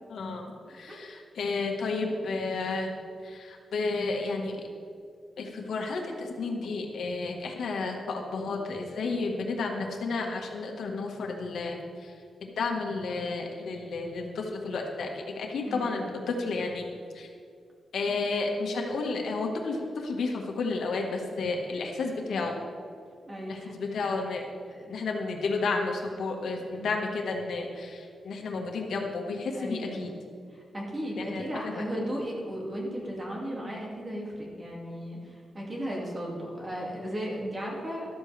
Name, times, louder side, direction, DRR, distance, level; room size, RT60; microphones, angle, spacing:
voice 1, 0.1-2.9 3.2-4.6 5.4-12.1 12.4-16.9 17.1-17.3 17.9-22.5 23.5-24.4 24.9-30.1 31.2-31.4 31.8-31.9, left 3 dB, 80° left, 1 dB, 1.5 m, -32 dB
voice 2, 15.7-16.1 23.3-23.7 24.7-24.9 26.7-26.9 29.5-30.1 30.5-38.2, equal, 20° right, -3 dB, 2.3 m, -36 dB
13.0 x 12.5 x 3.4 m, 2.3 s
wide cardioid pair, 160°, 0 cm